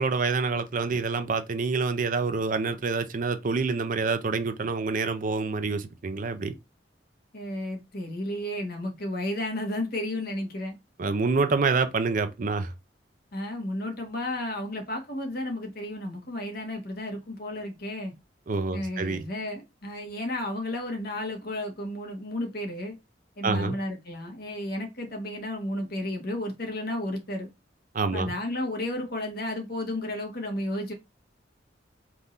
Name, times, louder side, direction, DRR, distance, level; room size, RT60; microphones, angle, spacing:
voice 1, 0.0-6.5 11.0-12.7 18.5-19.2 23.4-23.8 27.9-28.3, right 4 dB, 45° right, 0.5 m, -27 dB
voice 2, 7.3-10.7 13.3-18.1 18.7-23.0 23.4-27.5 28.1-30.9, left 1 dB, 55° left, 1.2 m, -33 dB
3.6 x 2.6 x 4.1 m
head